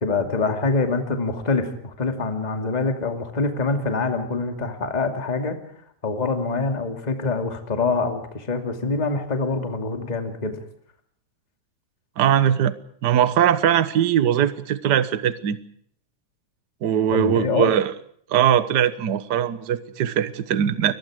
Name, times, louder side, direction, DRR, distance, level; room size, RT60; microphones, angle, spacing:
voice 1, 0.0-5.6 6.0-10.6 17.1-17.7, left 3 dB, 15° left, 6 dB, 2.2 m, -25 dB
voice 2, 12.2-12.7 13.0-15.6 16.8-17.9 18.3-20.9, right 10 dB, 60° right, 14 dB, 1.1 m, -20 dB
29.5 x 22.0 x 4.9 m, 0.63 s
omnidirectional pair, 3.5 m